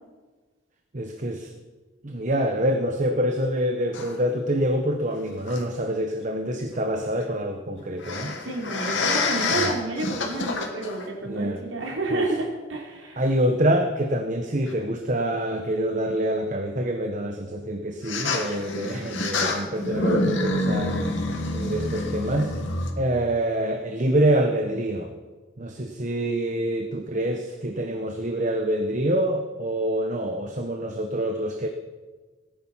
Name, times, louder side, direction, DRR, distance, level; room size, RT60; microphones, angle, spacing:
voice 1, 0.9-1.5 2.0-8.3 9.5-9.7 11.2-11.6 12.1-12.2 13.2-21.0 21.5-22.5 23.0-25.1 25.6-31.7, right 1 dB, 40° right, 5 dB, 1.1 m, -26 dB
sound 1, 3.9-4.2 5.5-5.6 8.0-11.1 11.8-11.9 14.7-14.8 18.0-22.9, left 2 dB, 70° left, 2.4 m, -27 dB
voice 2, 8.2-13.2, right 2 dB, 85° right, 0 dB, 3.8 m, -30 dB
18.5 x 10.5 x 5.7 m, 1.3 s
head